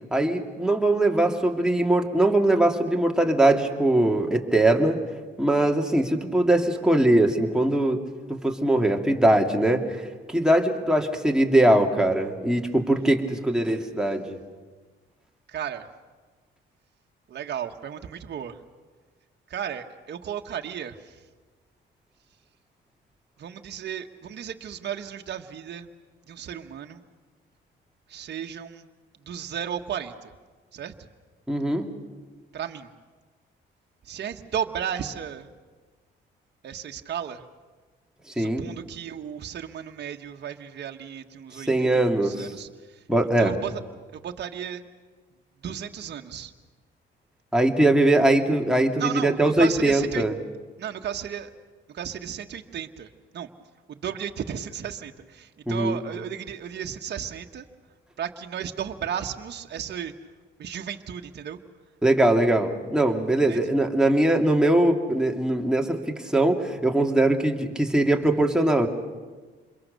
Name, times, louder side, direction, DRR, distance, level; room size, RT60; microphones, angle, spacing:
voice 1, 0.1-5.0 5.4-8.0 8.3-10.0 10.3-14.4 31.5-31.9 38.4-38.7 41.6-42.5 43.1-43.5 47.5-50.4 55.7-56.0 62.0-68.9, right 1 dB, 5° right, 1 dB, 2.6 m, -21 dB
voice 2, 15.5-15.9 17.3-18.5 19.5-20.9 23.4-25.9 26.3-27.0 28.1-28.8 29.3-30.1 30.7-30.9 32.5-32.9 34.1-35.5 36.6-37.4 38.4-41.9 42.2-42.7 43.4-43.7 44.1-44.8 45.6-46.5 49.0-50.2 50.8-51.5 51.9-53.1 53.3-53.5 54.0-57.6 58.2-60.1 60.6-61.6 63.5-63.6, right 9 dB, 60° right, 4 dB, 1.5 m, -34 dB
27.5 x 22.5 x 6.8 m, 1.4 s
cardioid pair, 90°, 20 cm